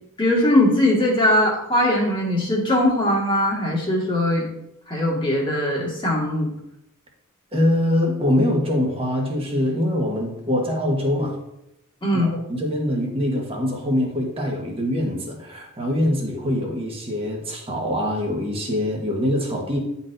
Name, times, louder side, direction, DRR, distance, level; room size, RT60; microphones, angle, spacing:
voice 1, 0.2-4.4 4.9-6.5 12.0-12.3, left 1 dB, 25° left, -4 dB, 1.8 m, -20 dB
voice 2, 7.5-11.4 12.1-19.8, left 1 dB, 25° right, -1 dB, 1.3 m, -23 dB
10.5 x 4.2 x 2.6 m, 0.83 s
head